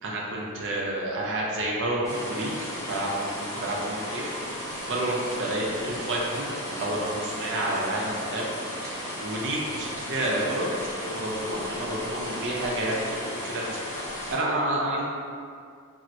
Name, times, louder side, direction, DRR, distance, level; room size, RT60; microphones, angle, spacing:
voice 1, 0.0-2.5 2.9-4.2 4.5-8.5 8.8-10.7 11.0-13.8 14.3-15.0, right 1 dB, 55° right, -3 dB, 0.6 m, -29 dB
sound 1, 2.0-14.4, equal, 15° left, 0.7 m, -35 dB
4.3 x 2.1 x 2.5 m, 2.3 s
head